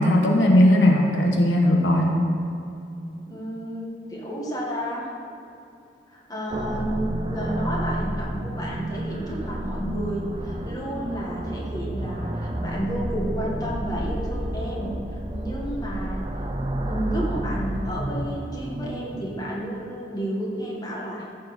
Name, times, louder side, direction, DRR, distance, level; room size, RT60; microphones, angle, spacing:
voice 1, 0.0-2.2, left 1 dB, 90° left, 1 dB, 1.2 m, -18 dB
voice 2, 3.3-5.0 6.1-16.2 16.7-21.3, equal, 20° left, -4 dB, 1.6 m, -31 dB
sound 1, 6.5-19.6, right 1 dB, 25° right, 0.5 m, -30 dB
14.0 x 6.5 x 4.2 m, 2.7 s
head